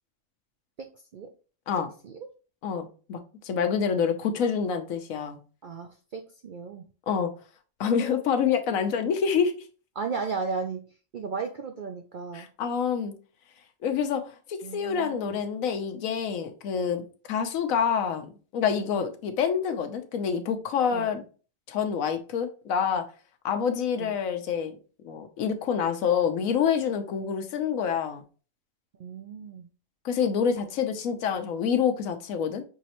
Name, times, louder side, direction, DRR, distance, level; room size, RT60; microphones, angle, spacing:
voice 1, 2.6-3.2 3.4-5.4 7.1-7.3 7.8-9.6 12.3-13.1 13.8-21.2 21.7-23.0 23.4-24.8 25.0-28.2 30.0-32.6, left 7 dB, 85° left, 7 dB, 1.1 m, -27 dB
voice 2, 5.6-6.8 10.0-10.8 11.1-12.5 14.6-15.4 18.9-19.0 20.9-21.1 24.0-24.1 29.0-29.7, right 5 dB, 70° right, 4 dB, 0.4 m, -35 dB
5.9 x 3.1 x 2.9 m, 0.37 s
omnidirectional pair, 1.4 m